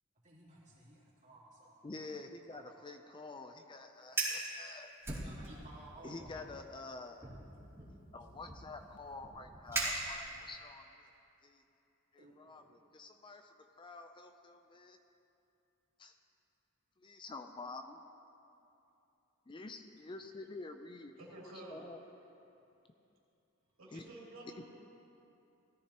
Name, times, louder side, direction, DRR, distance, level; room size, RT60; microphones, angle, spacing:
voice 1, 0.2-1.9 2.5-2.7 5.2-6.3 12.2-12.7, right 2 dB, 35° right, -7 dB, 3.1 m, -57 dB
voice 2, 1.8-4.9 6.0-7.3 8.1-11.1 11.4-11.6 12.1-15.0 16.0-16.2 17.0-18.0 19.5-22.0 23.9-24.1 24.6-24.7, left 3 dB, 25° left, 7 dB, 0.5 m, -48 dB
Fire, 4.0-4.5 5.0-5.8 6.2-6.5 7.2-10.6, right 2 dB, 15° right, 2.7 m, -39 dB
voice 3, 21.2-21.8 23.8-24.7, right 1 dB, 80° right, -5 dB, 3.0 m, -50 dB
17.5 x 13.5 x 2.9 m, 2.8 s
head